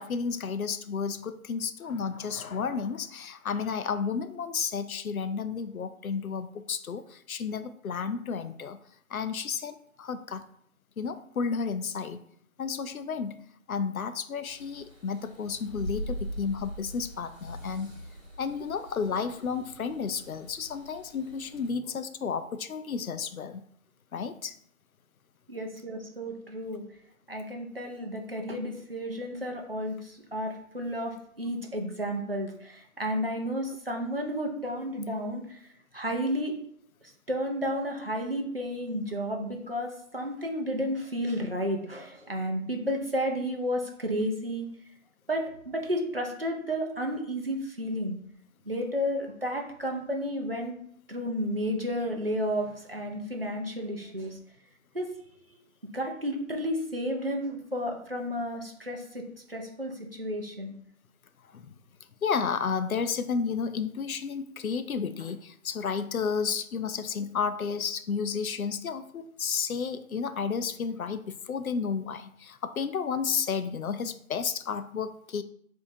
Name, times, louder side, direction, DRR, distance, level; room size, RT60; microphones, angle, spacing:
voice 1, 0.0-8.8 9.1-10.4 11.0-12.2 12.6-13.4 13.7-18.0 18.4-23.6 24.1-24.6 61.5-61.7 62.2-75.4, left 6 dB, 90° left, 11 dB, 0.5 m, -32 dB
sound 1, 14.4-21.7, equal, 25° left, 1.5 m, -42 dB
voice 2, 25.5-26.8 27.3-35.6 35.9-36.5 37.3-44.7 45.3-48.2 48.7-50.7 51.1-54.4 54.9-55.1 55.5-55.6 55.9-60.7, equal, 45° right, 1 dB, 0.6 m, -32 dB
4.8 x 2.8 x 2.6 m, 0.66 s
figure-of-eight pair, 180°, 41 cm